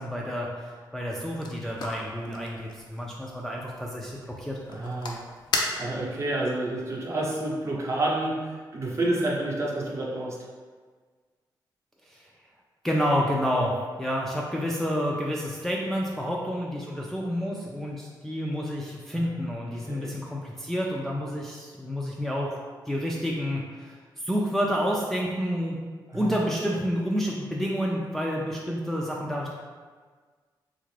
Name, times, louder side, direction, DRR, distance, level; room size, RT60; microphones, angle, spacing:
voice 1, 0.0-4.6 12.1-12.2 12.8-22.6 22.9-25.8 26.1-29.5, equal, 5° left, -3 dB, 0.3 m, -29 dB
sound 1, 1.1-6.3, left 3 dB, 65° left, 0.4 m, -36 dB
voice 2, 4.7-5.2 5.7-10.4 19.1-19.2 19.9-20.2 26.1-26.3, right 2 dB, 35° right, -3 dB, 0.7 m, -29 dB
3.6 x 2.4 x 3.1 m, 1.5 s
wide cardioid pair, 125°, 8 cm